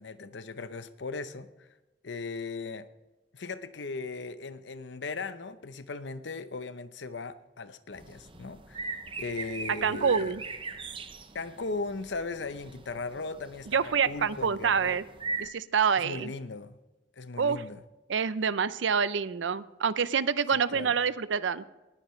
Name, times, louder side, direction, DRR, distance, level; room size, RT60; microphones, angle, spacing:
voice 1, 0.0-1.7 2.0-2.9 3.3-10.4 11.3-15.0 16.0-16.8 17.2-17.8 20.7-20.9, left 3 dB, 70° left, 12 dB, 0.7 m, -38 dB
sound 1, 7.9-15.5, right 3 dB, 25° right, 0.7 m, -41 dB
voice 2, 9.8-10.4 13.7-15.0 15.4-16.3 17.4-17.6 18.1-21.6, right 6 dB, 80° right, 16 dB, 0.5 m, -27 dB
19.5 x 10.0 x 3.2 m, 1.1 s
head